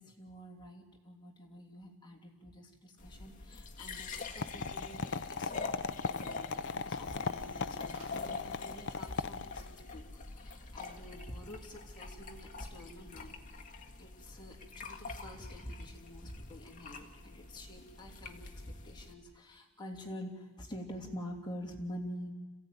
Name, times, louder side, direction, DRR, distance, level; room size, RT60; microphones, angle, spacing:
voice 1, 0.0-13.4 14.0-22.3, equal, 20° left, 0 dB, 3.0 m, -47 dB
sound 1, 3.0-19.1, left 3 dB, 40° left, 1.7 m, -46 dB
sound 2, 3.2-9.6, right 2 dB, 35° right, 3.7 m, -67 dB
sound 3, 4.4-9.8, left 4 dB, 55° left, 0.6 m, -38 dB
26.5 x 15.5 x 9.5 m, 1.4 s
head